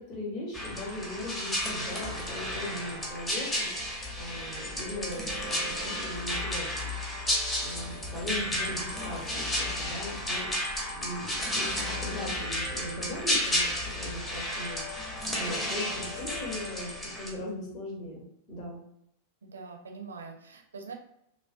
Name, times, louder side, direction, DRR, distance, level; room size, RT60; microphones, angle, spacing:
voice 1, 0.0-3.7 4.2-6.9 7.2-7.3 7.6-10.5 10.9-16.9 17.2-18.8, left 1 dB, 40° left, -3 dB, 0.9 m, -39 dB
sound 1, 0.5-17.3, left 1 dB, 10° left, 0.7 m, -32 dB
voice 2, 7.7-8.0 19.4-20.9, right 5 dB, 70° right, 2 dB, 0.4 m, -44 dB
2.5 x 2.0 x 2.4 m, 0.75 s
figure-of-eight pair, 90°, 0 cm